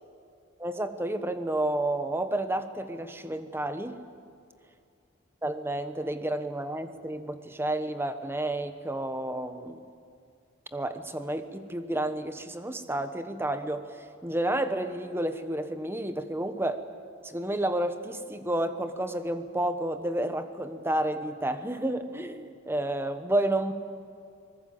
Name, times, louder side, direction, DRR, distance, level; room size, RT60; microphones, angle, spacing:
voice 1, 0.6-4.0 5.4-9.8 10.7-13.8 14.2-16.8 17.2-23.7, right 1 dB, 10° right, 9 dB, 1.1 m, -30 dB
26.0 x 19.5 x 7.8 m, 2.4 s
head